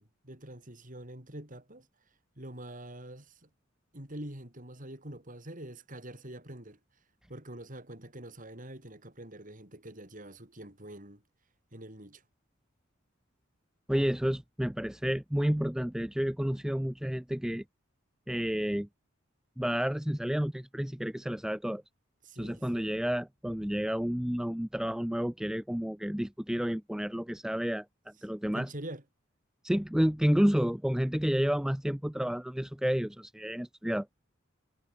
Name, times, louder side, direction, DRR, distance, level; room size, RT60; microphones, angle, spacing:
voice 1, 0.0-1.9 2.4-3.5 3.9-6.8 7.3-11.2 11.7-12.2 22.2-22.9 28.5-29.0, right 1 dB, 40° right, 6.9 m, -45 dB
voice 2, 13.9-17.6 18.3-18.9 19.6-21.8 22.4-27.9 28.2-28.7 29.6-34.1, equal, 5° right, 0.4 m, -30 dB
head